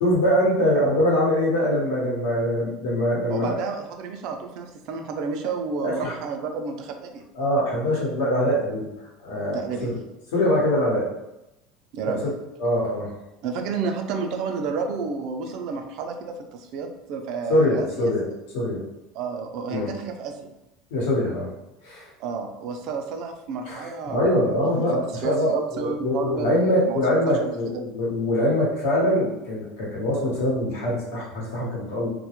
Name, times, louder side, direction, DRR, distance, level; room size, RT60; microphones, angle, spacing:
voice 1, 0.0-3.6 5.8-6.1 7.3-8.9 9.2-10.0 10.3-11.1 12.1-12.3 12.6-13.1 17.5-18.3 18.5-18.8 19.7-19.9 20.9-21.5 21.8-22.1 23.7-32.1, left 1 dB, 90° left, -4 dB, 0.9 m, -23 dB
voice 2, 3.3-7.2 9.5-9.9 11.9-12.2 13.4-18.1 19.1-20.4 22.2-24.9 25.2-27.0 27.3-28.0, right 5 dB, 55° right, 5 dB, 0.3 m, -31 dB
2.1 x 2.0 x 2.9 m, 0.93 s
cardioid pair, 155°, 0 cm